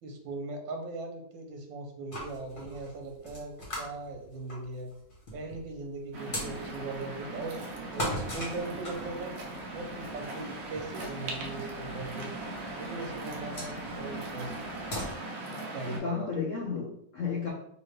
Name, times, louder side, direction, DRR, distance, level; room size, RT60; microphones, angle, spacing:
voice 1, 0.0-4.9 5.3-9.3 9.7-12.3 12.8-14.5 15.7-16.3, right 3 dB, 85° right, 3 dB, 1.4 m, -39 dB
sound 1, 2.1-15.1, equal, 30° left, 1.2 m, -41 dB
Waves surf, 6.1-16.0, right 2 dB, 60° right, 1.0 m, -39 dB
voice 2, 15.8-17.5, left 5 dB, 65° left, -3 dB, 0.8 m, -33 dB
3.6 x 2.8 x 3.2 m, 0.72 s
omnidirectional pair, 2.0 m